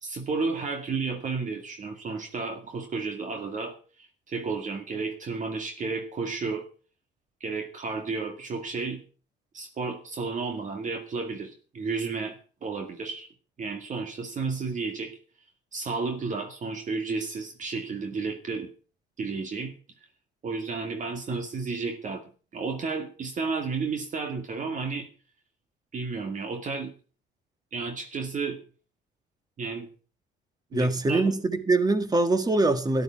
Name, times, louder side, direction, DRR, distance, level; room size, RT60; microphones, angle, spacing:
voice 1, 0.0-6.7 7.4-9.0 9.5-13.3 13.6-15.2 15.7-18.7 19.2-19.7 20.4-22.2 22.5-25.1 25.9-26.9 27.7-28.6 29.6-29.9 30.7-31.2, right 4 dB, 40° right, 2.0 m, -32 dB
voice 2, 30.7-33.0, right 2 dB, 20° right, 1.8 m, -23 dB
13.0 x 11.5 x 5.8 m
cardioid pair, 105°, 19 cm